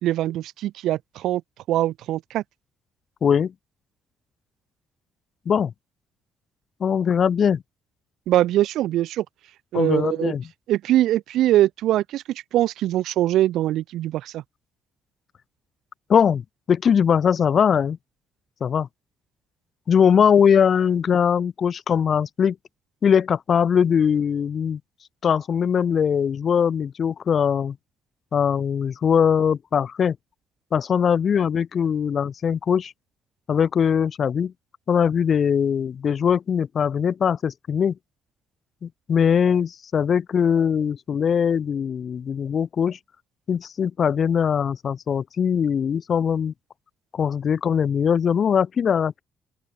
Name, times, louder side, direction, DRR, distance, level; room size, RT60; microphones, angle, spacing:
voice 1, 0.0-1.4 1.7-2.4 8.3-9.3 9.7-10.3 10.7-14.4, right 14 dB, 85° right, 0.4 m, -22 dB
voice 2, 3.2-3.5 5.5-5.7 6.8-7.6 9.7-10.4 16.1-16.4 16.7-18.0 18.6-18.9 19.9-22.6 23.0-24.8 25.2-27.8 28.3-30.2 30.7-32.9 33.5-34.5 34.9-37.9 38.8-43.0 43.5-46.5 47.1-49.2, left 7 dB, 40° left, 0.6 m, -21 dB
open air
cardioid pair, 150°, 0 cm